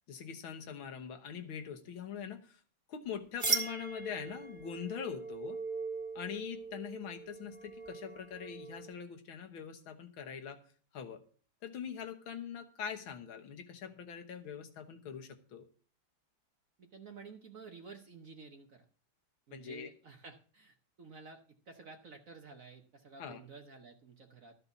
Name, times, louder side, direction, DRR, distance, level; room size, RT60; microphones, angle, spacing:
voice 1, 0.1-2.6 2.9-5.6 6.2-10.6 10.9-11.2 11.6-15.7 19.5-19.9 23.2-23.4, left 7 dB, 70° left, 5 dB, 2.0 m, -43 dB
sound 1, 3.4-9.0, right 4 dB, 25° right, 1.8 m, -39 dB
voice 2, 16.8-18.8 19.5-21.4 21.7-24.6, right 4 dB, 50° right, 5 dB, 1.2 m, -52 dB
13.0 x 5.4 x 7.1 m, 0.43 s
omnidirectional pair, 2.3 m